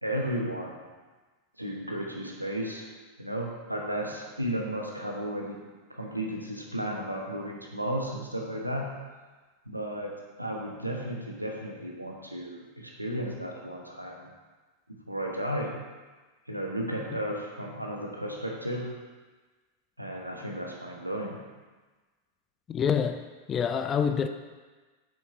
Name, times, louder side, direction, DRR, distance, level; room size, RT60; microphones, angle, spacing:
voice 1, 0.0-0.8 1.6-2.9 3.2-5.6 5.9-8.9 9.7-10.1 10.4-14.3 14.9-15.7 16.5-18.9 20.0-21.4, equal, 90° right, -1 dB, 1.2 m, -34 dB
voice 2, 22.7-23.2 23.5-24.3, left 7 dB, 25° left, 8 dB, 0.5 m, -26 dB
8.1 x 7.2 x 2.8 m, 1.3 s
figure-of-eight pair, 90°, 0 cm